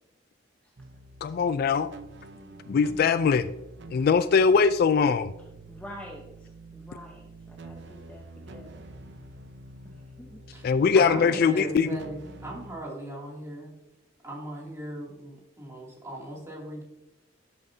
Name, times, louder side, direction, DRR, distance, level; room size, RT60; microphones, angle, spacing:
sound 1, 0.8-12.7, right 2 dB, 65° right, 0.7 m, -47 dB
voice 1, 1.2-1.9 2.7-3.5 3.9-5.3 10.6-11.9, left 5 dB, 50° left, 13 dB, 0.3 m, -21 dB
voice 2, 2.3-3.1 5.4-8.9 9.8-10.4, left 1 dB, 10° left, -1 dB, 0.9 m, -48 dB
voice 3, 10.9-13.7 14.2-16.8, right 1 dB, 15° right, -4 dB, 2.5 m, -38 dB
12.0 x 7.3 x 2.7 m, 0.98 s
head